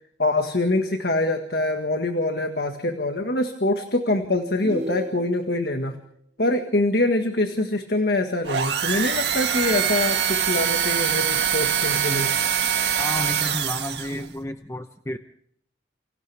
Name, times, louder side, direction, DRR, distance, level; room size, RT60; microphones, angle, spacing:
voice 1, 0.2-5.9 6.4-12.3, left 2 dB, 55° left, 6 dB, 1.7 m, -24 dB
sound 1, 4.6-5.7, equal, 40° right, 3.9 m, -32 dB
sound 2, 8.4-14.3, right 9 dB, 65° right, 1.9 m, -24 dB
voice 2, 13.0-15.2, left 1 dB, 15° left, 6 dB, 0.9 m, -31 dB
29.0 x 25.5 x 3.5 m, 0.67 s
head